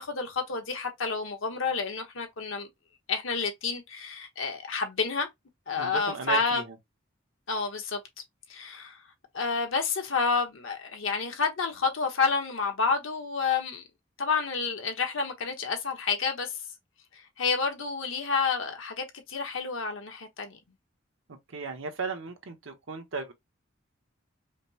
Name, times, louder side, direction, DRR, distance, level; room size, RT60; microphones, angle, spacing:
voice 1, 0.0-2.7 3.1-5.3 5.7-6.6 7.5-8.0 8.5-9.0 9.3-13.8 14.2-16.5 17.1-20.6, left 4 dB, 80° left, 1.0 m, -29 dB
voice 2, 5.8-6.6 21.5-23.3, right 4 dB, 80° right, 0.9 m, -35 dB
5.0 x 2.0 x 2.7 m
head